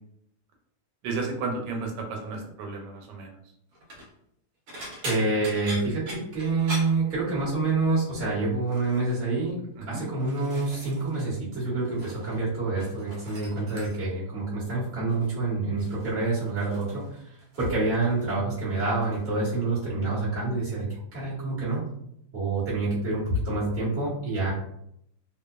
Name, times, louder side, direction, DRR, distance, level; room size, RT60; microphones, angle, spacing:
voice 1, 1.0-3.3 9.8-10.0, right 3 dB, 85° right, 1 dB, 1.2 m, -33 dB
sound 1, 3.7-4.1 4.7-7.7 8.0-8.3 8.7-9.2 9.9-11.3 11.6-12.4 12.7-14.2 15.1-15.4 15.8-17.8 18.1-18.6 19.0-19.2 20.5-20.6, equal, 65° right, 1.0 m, -42 dB
voice 2, 5.0-9.6 9.9-21.9 22.3-24.5, right 3 dB, 10° right, -9 dB, 0.9 m, -27 dB
2.8 x 2.2 x 2.3 m, 0.74 s
omnidirectional pair, 1.9 m